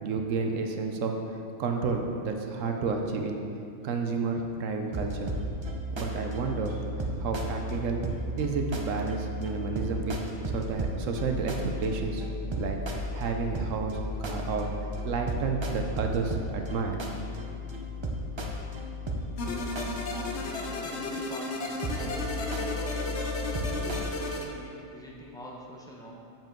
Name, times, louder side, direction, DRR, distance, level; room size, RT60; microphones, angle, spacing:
voice 1, 0.0-1.1 1.6-3.4 3.8-5.3 5.9-6.8 7.2-8.0 8.4-10.2 10.5-12.8 13.1-14.7 15.0-17.0 17.3-17.4, right 4 dB, 70° right, 3 dB, 1.0 m, -31 dB
sound 1, 4.9-20.6 21.5-24.0, equal, 50° right, 0.3 m, -34 dB
sound 2, 19.4-24.4, left 2 dB, 55° left, 1.0 m, -34 dB
voice 2, 20.4-21.5 22.4-23.2 23.6-26.1, equal, 5° left, -4 dB, 0.8 m, -45 dB
7.3 x 7.3 x 3.8 m, 2.5 s
omnidirectional pair, 1.5 m